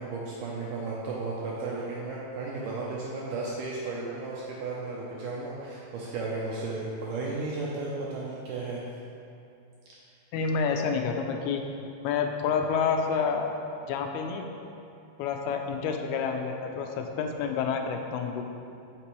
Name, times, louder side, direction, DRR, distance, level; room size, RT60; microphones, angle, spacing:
voice 1, 0.0-8.9, right 3 dB, 80° right, -5 dB, 1.9 m, -34 dB
voice 2, 10.3-11.6 12.0-13.5 13.9-14.5 15.2-18.5, left 6 dB, 85° left, 4 dB, 2.5 m, -28 dB
8.2 x 6.0 x 3.0 m, 2.6 s
omnidirectional pair, 4.4 m